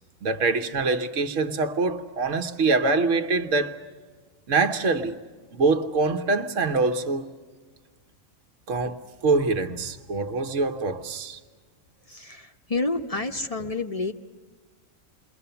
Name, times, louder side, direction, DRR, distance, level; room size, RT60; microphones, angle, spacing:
voice 1, 0.2-3.8 4.5-5.2 5.5-7.3 8.7-11.4, right 3 dB, 65° right, 1.4 m, -24 dB
voice 2, 12.1-14.1, left 3 dB, 30° left, 0.8 m, -29 dB
28.5 x 22.5 x 6.9 m
omnidirectional pair, 1.4 m